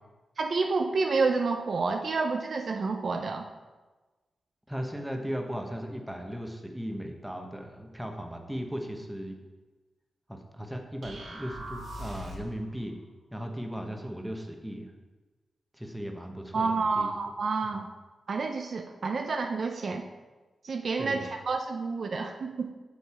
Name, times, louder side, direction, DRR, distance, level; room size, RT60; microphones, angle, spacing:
voice 1, 0.4-3.5 16.5-17.9 18.3-20.1 20.6-22.7, right 4 dB, 55° right, 4 dB, 0.7 m, -29 dB
voice 2, 4.7-9.4 10.3-13.0 13.3-14.9 15.8-17.1 17.7-17.8 21.0-21.3, equal, 5° right, 3 dB, 1.2 m, -37 dB
sound 1, 11.0-12.6, right 1 dB, 75° right, 2.8 m, -40 dB
8.3 x 7.0 x 4.4 m, 1.2 s
cardioid pair, 80°, 0 cm